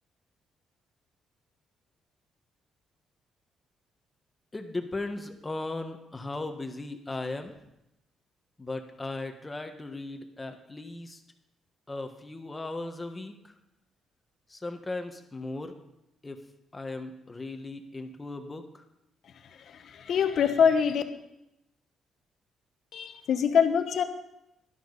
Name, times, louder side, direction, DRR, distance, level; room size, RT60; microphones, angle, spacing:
voice 1, 4.5-7.5 8.6-11.2 11.9-13.5 14.5-15.8 16.2-16.4 16.7-18.8, left 2 dB, 20° left, 6 dB, 1.4 m, -37 dB
voice 2, 19.7-21.0 22.9-24.0, left 7 dB, 65° left, 8 dB, 1.2 m, -24 dB
12.0 x 11.5 x 4.1 m, 0.86 s
cardioid pair, 90°, 0 cm